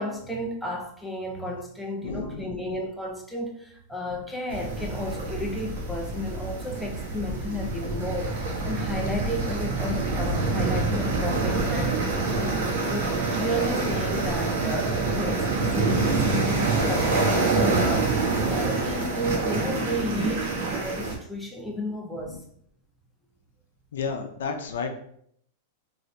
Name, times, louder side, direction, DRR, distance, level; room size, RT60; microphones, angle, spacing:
voice 1, 0.0-22.4, left 1 dB, ahead, 0.5 m, -33 dB
voice 2, 2.0-2.8 4.1-4.2 7.9-8.1 18.6-18.7 22.2-22.4 23.9-24.9, left 5 dB, 85° left, 0.5 m, -33 dB
sound 1, 4.5-21.2, right 3 dB, 70° right, 1.0 m, -26 dB
3.1 x 2.6 x 2.6 m
supercardioid pair, 140°, 0 cm